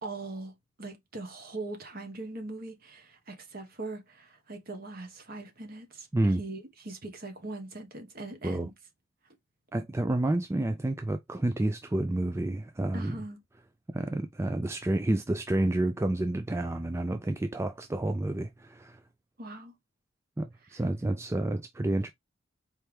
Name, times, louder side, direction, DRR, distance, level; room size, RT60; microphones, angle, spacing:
voice 1, 0.0-6.1 6.4-8.7 12.9-13.4 19.4-19.7 20.6-20.8, right 2 dB, 50° right, 1.4 m, -41 dB
voice 2, 9.7-13.1 13.9-19.0 20.4-22.1, right 1 dB, 15° right, 0.3 m, -29 dB
4.5 x 3.3 x 3.4 m
head